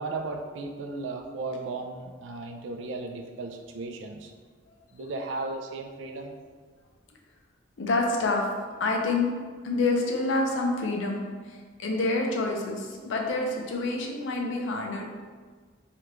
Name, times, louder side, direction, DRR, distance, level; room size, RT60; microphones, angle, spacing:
voice 1, 0.0-4.3 4.9-6.4, right 3 dB, 85° right, 4 dB, 0.4 m, -35 dB
voice 2, 7.8-8.5 8.8-9.3 9.6-11.2 11.5-15.1, left 2 dB, 90° left, 1 dB, 0.5 m, -27 dB
3.4 x 2.4 x 3.0 m, 1.5 s
head